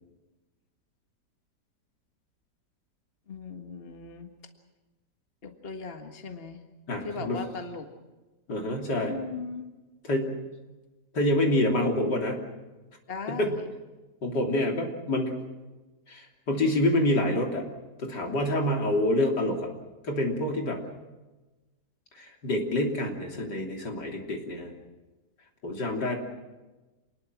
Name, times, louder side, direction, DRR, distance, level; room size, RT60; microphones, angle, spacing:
voice 1, 3.3-4.3 5.4-6.6 7.0-7.9 9.1-9.7 13.1-13.7, left 4 dB, 35° left, 5 dB, 1.9 m, -38 dB
voice 2, 6.9-7.4 8.5-9.1 10.1-10.4 11.1-12.4 13.3-13.6 14.2-15.3 16.1-17.7 18.0-19.7 20.0-20.8 22.1-24.7 25.6-26.1, left 1 dB, 80° left, 1 dB, 3.9 m, -27 dB
28.0 x 20.5 x 6.1 m, 1.1 s
omnidirectional pair, 1.8 m